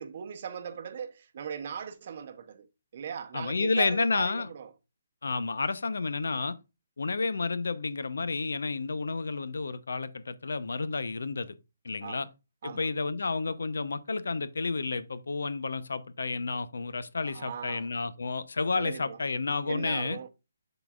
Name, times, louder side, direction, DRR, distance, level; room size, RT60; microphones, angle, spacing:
voice 1, 0.0-2.7 2.9-4.7 12.0-12.3 12.6-12.9 17.2-17.9 18.7-19.2 19.7-20.3, right 8 dB, 35° right, 0.7 m, -39 dB
voice 2, 3.3-4.5 5.2-6.6 7.0-11.5 11.8-12.3 12.6-20.2, left 3 dB, 90° left, 0.8 m, -31 dB
12.0 x 4.0 x 2.4 m
hypercardioid pair, 175°, 0 cm